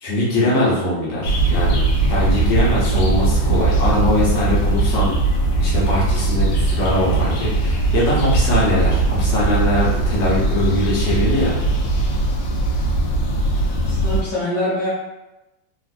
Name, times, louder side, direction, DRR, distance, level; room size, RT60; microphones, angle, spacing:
voice 1, 0.0-1.8 2.1-5.2 5.6-11.5, left 1 dB, 70° left, -6 dB, 1.6 m, -21 dB
sound 1, 1.2-14.2, right 2 dB, 85° left, 1.4 m, -19 dB
voice 2, 13.8-14.9, left 1 dB, 55° left, -10 dB, 1.5 m, -24 dB
3.5 x 2.5 x 2.5 m, 0.98 s
omnidirectional pair, 2.1 m